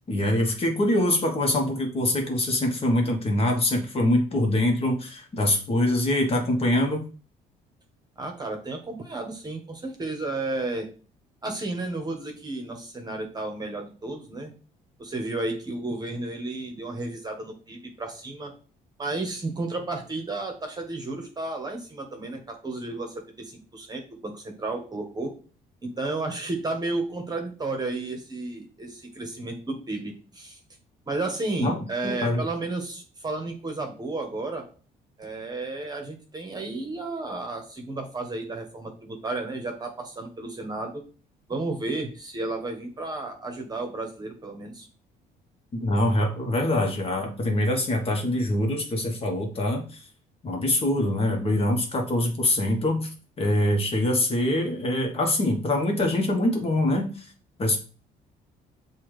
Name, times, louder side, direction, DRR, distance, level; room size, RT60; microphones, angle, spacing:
voice 1, 0.1-7.0 31.6-32.4 45.7-50.0 50.4-53.1 53.4-57.3 57.6-57.8, left 1 dB, 35° left, 2 dB, 1.2 m, -24 dB
voice 2, 8.2-10.9 11.4-14.5 15.0-18.5 19.0-25.3 25.8-30.6 31.1-34.7 35.2-41.0 41.5-44.9, right 2 dB, 25° right, 3 dB, 1.1 m, -32 dB
6.9 x 2.4 x 3.1 m, 0.38 s
cardioid pair, 110°, 17 cm